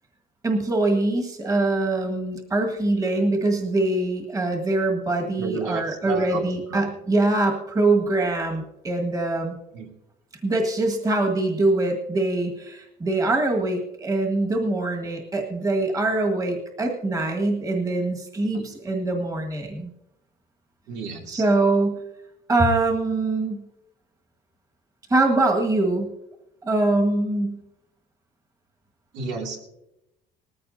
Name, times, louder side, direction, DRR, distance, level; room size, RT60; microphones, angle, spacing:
voice 1, 0.4-9.5 10.4-19.9 21.3-22.0 22.5-23.6 25.1-26.1 26.6-27.6, right 2 dB, 20° right, 3 dB, 1.7 m, -23 dB
voice 2, 5.4-6.9 9.7-9.9 18.5-18.6 20.9-21.4 29.1-29.6, right 4 dB, 80° right, 0 dB, 2.9 m, -32 dB
19.5 x 14.5 x 2.7 m, 0.85 s
cardioid pair, 160°, 18 cm